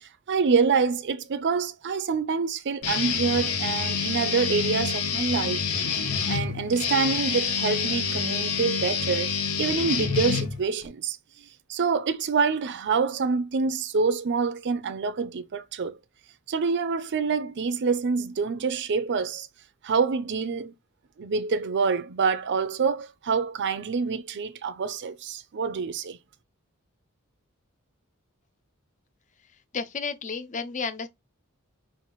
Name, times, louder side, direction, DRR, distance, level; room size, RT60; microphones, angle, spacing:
voice 1, 0.0-5.6 6.0-11.2 11.7-16.0 16.5-19.5 19.8-20.7 21.2-26.2, right 5 dB, 55° right, 0.5 m, -26 dB
Guitar, 2.8-10.9, left 6 dB, 80° left, 1.0 m, -27 dB
voice 2, 29.7-31.1, left 5 dB, 35° left, 0.5 m, -32 dB
5.7 x 2.5 x 3.0 m
head